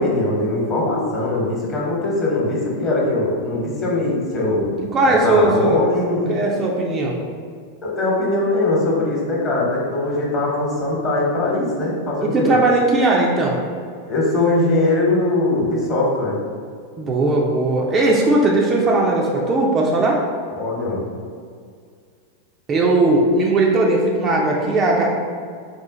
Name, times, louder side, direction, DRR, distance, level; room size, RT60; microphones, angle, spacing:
voice 1, 0.0-4.7 5.2-6.4 7.8-12.5 14.1-16.4 20.5-21.1, left 2 dB, 30° left, -4 dB, 1.1 m, -21 dB
voice 2, 4.8-5.8 6.1-7.2 12.2-13.6 17.0-20.2 22.7-25.1, right 2 dB, 25° right, -2 dB, 0.5 m, -18 dB
4.2 x 2.4 x 3.6 m, 2.1 s
figure-of-eight pair, 90°, 0 cm